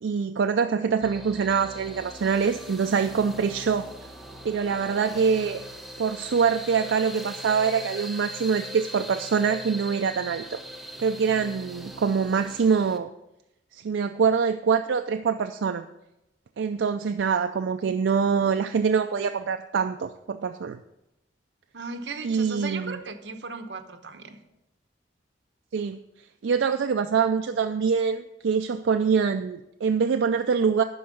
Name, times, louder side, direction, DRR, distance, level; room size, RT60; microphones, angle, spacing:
voice 1, 0.0-3.9 4.4-5.6 6.0-10.6 11.0-13.1 13.7-15.8 16.6-20.8 22.2-23.0 25.7-26.0 26.4-30.8, right 6 dB, 90° right, 7 dB, 0.4 m, -24 dB
sound 1, 1.0-13.0, right 1 dB, ahead, 0.8 m, -41 dB
voice 2, 21.7-24.4, right 4 dB, 70° right, 6 dB, 1.0 m, -37 dB
11.5 x 4.6 x 6.3 m, 0.90 s
head